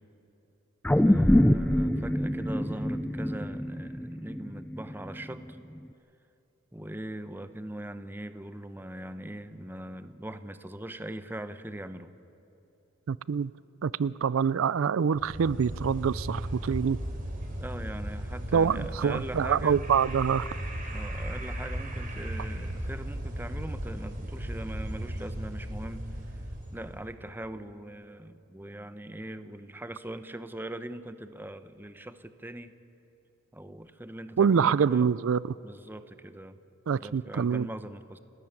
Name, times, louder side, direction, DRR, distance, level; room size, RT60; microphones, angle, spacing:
sound 1, 0.8-5.3 5.8-5.9, left 1 dB, 5° left, 0.4 m, -25 dB
voice 1, 1.0-5.6 6.7-12.1 17.6-19.8 20.9-26.4 26.7-32.7 33.5-35.1 35.6-36.6 37.0-38.2, right 1 dB, 10° right, 0.8 m, -41 dB
voice 2, 13.1-13.5 13.8-17.0 18.5-20.5 34.4-35.4 36.9-37.7, right 6 dB, 85° right, 0.4 m, -25 dB
sound 2, 15.1-27.1, right 1 dB, 45° right, 3.4 m, -36 dB
29.5 x 13.0 x 9.0 m
head